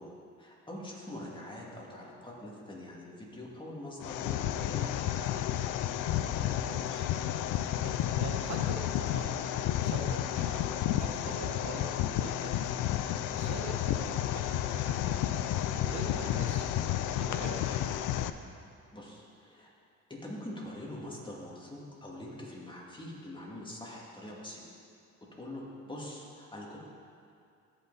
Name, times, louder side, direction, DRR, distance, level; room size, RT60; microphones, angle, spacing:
voice 1, 0.0-5.1 18.9-19.7 20.1-24.6 25.4-26.8, left 1 dB, 15° left, -4 dB, 2.4 m, -44 dB
sound 1, 4.0-18.3, left 11 dB, 90° left, 0.5 m, -31 dB
voice 2, 6.4-7.1 7.8-7.9 8.2-9.5 9.8-10.7 11.0-11.8 12.1-12.5 13.3-15.2 15.7-16.7 17.1-17.8, right 4 dB, 65° right, 1 dB, 1.1 m, -44 dB
16.5 x 5.7 x 4.1 m, 2.5 s
cardioid pair, 90°, 30 cm